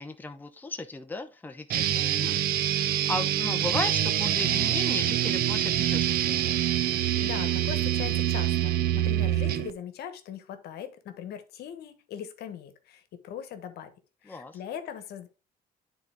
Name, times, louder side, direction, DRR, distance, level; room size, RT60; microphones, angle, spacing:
voice 1, 0.0-6.7 14.2-14.6, left 3 dB, 10° left, 7 dB, 0.7 m, -36 dB
sound 1, 1.7-9.7, right 12 dB, 65° right, 0.7 m, -26 dB
voice 2, 7.2-13.9 14.2-15.3, left 9 dB, 70° left, 9 dB, 1.2 m, -40 dB
9.8 x 4.0 x 3.5 m, 0.30 s
cardioid pair, 110°, 17 cm